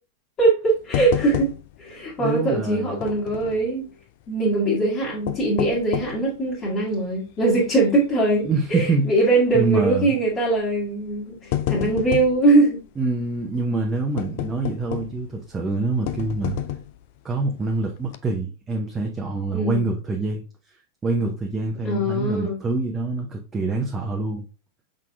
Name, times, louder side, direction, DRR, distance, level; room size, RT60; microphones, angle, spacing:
voice 1, 0.4-3.9 4.3-12.8 19.5-19.8 21.8-22.6, right 2 dB, 25° left, 1.5 m, -21 dB
sound 1, 0.9-1.9 2.2-2.3 3.0-3.7 5.0-6.3 6.8-6.9 7.6-7.8 8.1-8.2 9.4-9.7 10.6-10.7 11.1-12.4 14.2-15.3 16.1-17.0 17.6-17.7 18.0-18.2, left 12 dB, 50° left, 0.4 m, -29 dB
voice 2, 2.2-3.0 8.4-9.1 9.5-10.2 13.0-16.6 17.2-20.4 21.0-24.4, right 3 dB, 15° right, 0.7 m, -25 dB
5.8 x 3.7 x 2.2 m
figure-of-eight pair, 90°, 0 cm